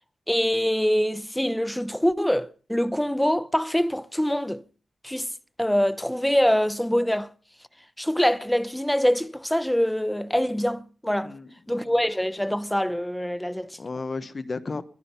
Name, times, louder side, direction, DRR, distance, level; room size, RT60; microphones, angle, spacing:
voice 1, 0.3-4.6 5.0-5.3 5.6-7.3 8.0-11.3 11.7-13.8, equal, 5° left, 0.8 m, -24 dB
voice 2, 11.2-12.0 13.8-14.8, left 3 dB, 35° left, 1.2 m, -34 dB
22.0 x 10.0 x 5.9 m
wide cardioid pair, 115°, 0 cm